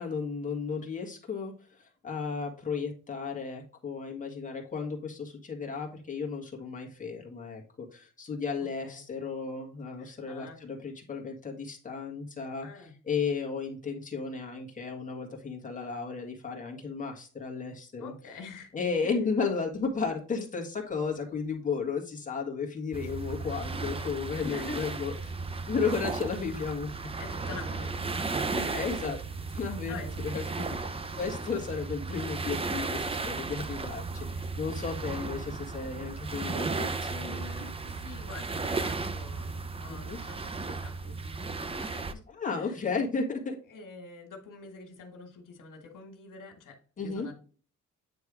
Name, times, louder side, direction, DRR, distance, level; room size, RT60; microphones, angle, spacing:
voice 1, 0.0-1.5 1.8-18.1 18.7-25.1 25.7-27.1 28.7-29.2 29.5-30.0 30.2-37.9 39.9-40.2 42.3-43.6 47.0-47.3, left 5 dB, 25° left, 0 dB, 1.8 m, -34 dB
voice 2, 8.6-9.0 10.0-10.6 12.6-12.9 18.0-18.7 19.0-19.2 24.3-24.8 27.2-28.9 29.9-31.1 35.4-35.6 37.9-42.2 42.6-42.9 43.7-47.3, left 4 dB, 85° left, 4 dB, 1.9 m, -46 dB
sound 1, 22.9-42.1, right 3 dB, 20° right, 0.5 m, -35 dB
9.4 x 3.4 x 4.8 m, 0.39 s
wide cardioid pair, 180°, 31 cm